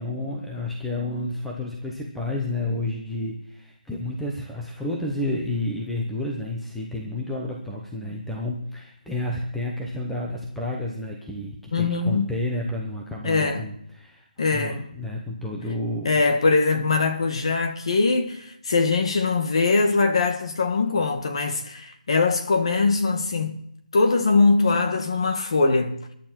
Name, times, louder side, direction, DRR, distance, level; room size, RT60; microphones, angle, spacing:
voice 1, 0.0-14.3 14.5-16.2, left 1 dB, ahead, 0.8 m, -30 dB
voice 2, 11.7-12.3 13.2-13.7 14.4-14.9 16.0-23.6 23.9-26.1, left 3 dB, 40° left, 1.9 m, -22 dB
22.0 x 11.5 x 4.5 m
hypercardioid pair, 175°, 5 cm